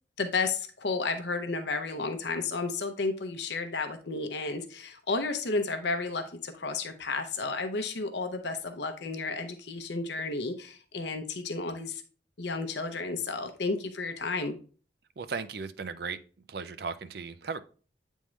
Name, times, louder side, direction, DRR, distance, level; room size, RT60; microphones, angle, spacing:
voice 1, 0.2-12.0 12.4-14.6, left 3 dB, 65° left, 7 dB, 0.7 m, -32 dB
voice 2, 15.2-16.2 16.5-17.6, right 5 dB, 55° right, 12 dB, 0.4 m, -36 dB
8.5 x 3.6 x 3.1 m, 0.38 s
head